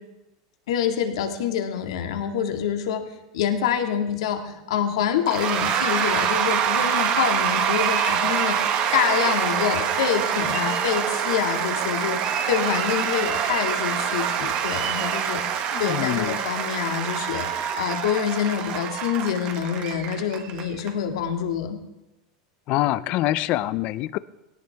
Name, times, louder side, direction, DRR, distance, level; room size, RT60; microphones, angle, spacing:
voice 1, 0.7-3.0 3.3-8.6 8.9-15.4 15.8-21.8, left 8 dB, 85° left, 5 dB, 2.0 m, -26 dB
Cheering / Applause / Crowd, 5.3-20.9, right 8 dB, 40° right, 1.5 m, -25 dB
voice 2, 15.7-16.4 22.7-24.2, left 15 dB, 45° left, 18 dB, 0.5 m, -25 dB
19.0 x 17.5 x 3.5 m, 0.97 s
supercardioid pair, 150°, 3 cm